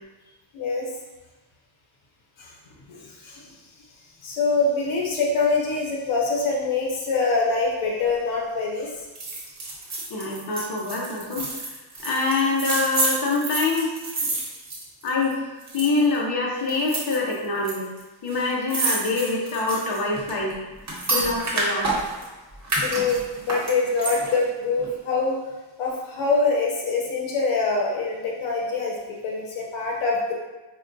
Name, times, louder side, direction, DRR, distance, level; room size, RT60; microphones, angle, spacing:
voice 1, 0.5-0.8 2.4-2.5 2.9-3.4 4.2-8.9 22.8-23.2 23.5-25.4 25.8-28.9 29.2-30.3, left 3 dB, 85° left, -2 dB, 0.8 m, -24 dB
sound 1, 9.2-15.3 15.6-16.2 16.7-17.7 18.0-18.1 18.3-22.3 22.6-24.4 24.8-24.9, right 2 dB, 35° right, 1.0 m, -29 dB
voice 2, 10.1-11.5 12.0-13.9 15.0-15.4 15.7-17.9 18.2-20.6 21.1-21.9, left 3 dB, 50° left, -2 dB, 0.7 m, -25 dB
4.7 x 2.2 x 2.6 m, 1.1 s
cardioid pair, 115°, 47 cm